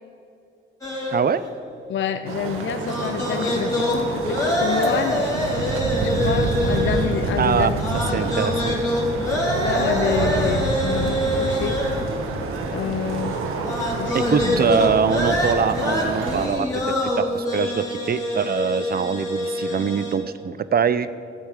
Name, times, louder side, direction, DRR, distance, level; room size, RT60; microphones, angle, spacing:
sound 1, 0.8-1.2 2.7-7.4 7.8-12.1 13.6-20.2, left 1 dB, 15° left, 3.6 m, -25 dB
voice 1, 1.1-1.5 7.4-7.7 8.1-8.8 14.1-21.1, right 6 dB, 45° right, 14 dB, 0.6 m, -23 dB
voice 2, 1.9-5.2 6.0-8.3 9.6-11.8 12.7-13.4 13.9-14.7, left 8 dB, 65° left, 9 dB, 0.6 m, -28 dB
sound 2, 2.3-16.5, right 3 dB, 90° right, 1.2 m, -27 dB
13.0 x 8.1 x 6.6 m, 2.7 s
cardioid pair, 70°, 21 cm